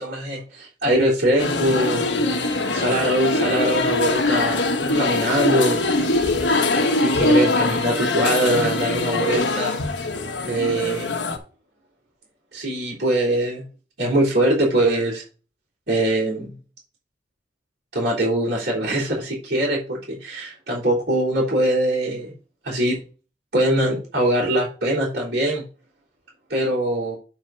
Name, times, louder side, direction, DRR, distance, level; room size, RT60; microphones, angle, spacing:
voice 1, 0.0-2.1 2.7-5.8 6.9-9.7 10.5-11.1 12.5-13.7 14.0-15.2 15.9-16.6 17.9-22.3 22.6-23.0 23.5-25.7 26.5-27.2, right 1 dB, 55° right, -9 dB, 3.6 m, -22 dB
sound 1, 1.4-11.4, left 2 dB, 70° left, 1.4 m, -22 dB
8.0 x 4.7 x 5.7 m, 0.36 s
head